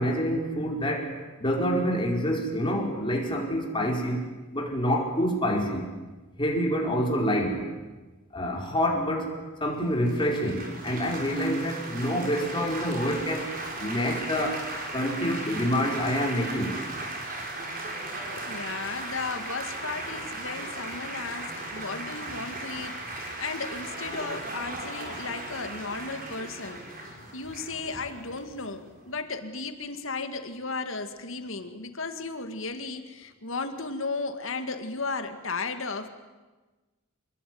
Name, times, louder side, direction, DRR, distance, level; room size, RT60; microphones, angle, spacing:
voice 1, 0.0-5.9 6.4-7.6 8.3-9.3 9.6-13.5 13.8-14.7 14.9-16.8 24.1-24.3, equal, 20° left, 0 dB, 4.8 m, -27 dB
Laughter / Applause / Chatter, 10.1-29.2, right 2 dB, 40° right, 5.4 m, -37 dB
voice 2, 18.4-23.0 23.4-26.9 27.3-36.1, left 4 dB, 60° left, 8 dB, 2.2 m, -35 dB
27.0 x 21.0 x 9.5 m, 1.2 s
head